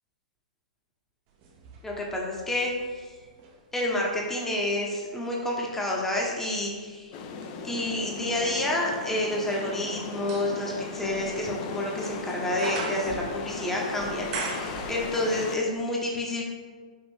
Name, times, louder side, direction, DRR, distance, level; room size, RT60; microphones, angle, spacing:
sound 1, 1.4-3.6 4.1-15.5 15.7-15.8, right 3 dB, 40° right, 0.6 m, -41 dB
voice 1, 1.8-3.1 3.7-7.1 7.6-16.5, left 1 dB, 10° left, -2 dB, 0.8 m, -29 dB
sound 2, 7.1-15.6, left 4 dB, 40° left, 0.4 m, -37 dB
5.2 x 2.5 x 3.3 m, 1.5 s
figure-of-eight pair, 110°, 4 cm